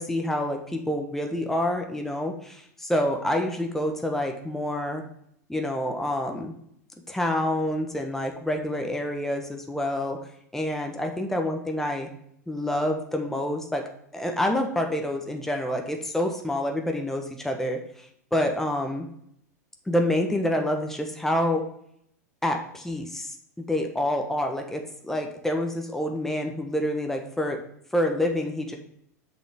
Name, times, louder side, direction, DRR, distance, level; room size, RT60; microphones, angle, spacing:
voice 1, 0.0-5.0 5.5-6.5 7.1-10.2 10.5-12.1 12.5-13.8 14.1-17.8 18.3-19.0 19.9-21.6 22.4-23.3 23.6-27.6 27.9-28.8, left 1 dB, 5° left, 3 dB, 1.3 m, -27 dB
7.4 x 6.4 x 3.6 m, 0.70 s
figure-of-eight pair, 90°, 9 cm